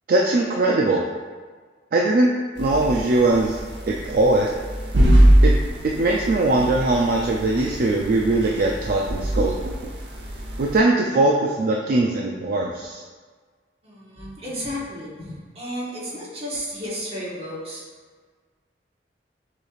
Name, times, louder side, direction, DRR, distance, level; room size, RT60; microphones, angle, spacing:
voice 1, 0.1-1.0 1.9-2.3 2.6-3.6 3.9-4.5 5.4-5.5 6.0-9.8 10.6-13.0, right 2 dB, 55° right, -1 dB, 0.4 m, -20 dB
sound 1, 2.6-10.8, equal, 80° right, 0.8 m, -22 dB
voice 2, 13.8-17.8, equal, 35° right, -6 dB, 1.3 m, -33 dB
6.6 x 3.2 x 2.4 m, 1.5 s
head